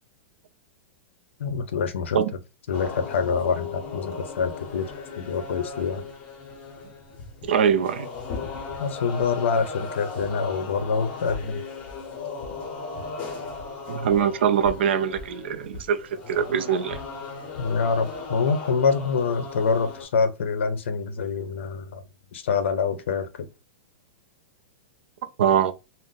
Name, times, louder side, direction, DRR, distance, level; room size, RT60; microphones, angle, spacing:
voice 1, 1.4-2.2 2.7-4.9 5.2-6.0 8.8-11.6 17.6-22.0 22.3-23.5, left 5 dB, 90° left, 0.6 m, -26 dB
sound 1, 2.7-20.0, left 4 dB, 25° left, 0.6 m, -37 dB
voice 2, 7.4-8.1 13.9-17.0 25.4-25.7, right 8 dB, 65° right, 0.4 m, -23 dB
2.5 x 2.1 x 3.7 m
supercardioid pair, 175°, 6 cm